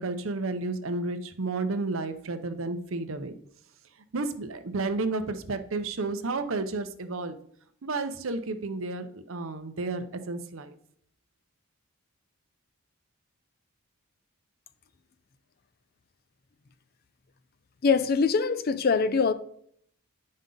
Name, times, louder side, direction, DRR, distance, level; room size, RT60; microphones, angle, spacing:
voice 1, 0.0-3.3 4.1-7.4 7.8-10.8, right 3 dB, 65° right, 0.7 m, -32 dB
voice 2, 17.8-19.3, left 5 dB, 45° left, 0.4 m, -23 dB
9.5 x 5.3 x 3.8 m
head